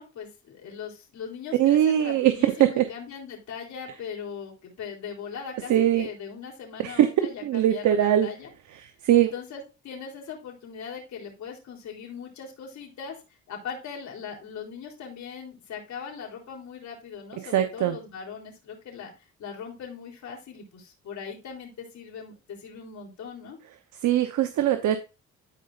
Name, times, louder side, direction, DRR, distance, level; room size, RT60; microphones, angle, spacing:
voice 1, 0.0-8.5 9.1-23.6, left 6 dB, 65° left, 0 dB, 3.6 m, -40 dB
voice 2, 1.6-2.9 5.7-6.1 6.8-8.3 9.0-9.3 17.4-18.0 24.0-25.0, right 11 dB, 75° right, 9 dB, 0.9 m, -21 dB
12.0 x 5.2 x 2.5 m, 0.30 s
cardioid pair, 90°, 30 cm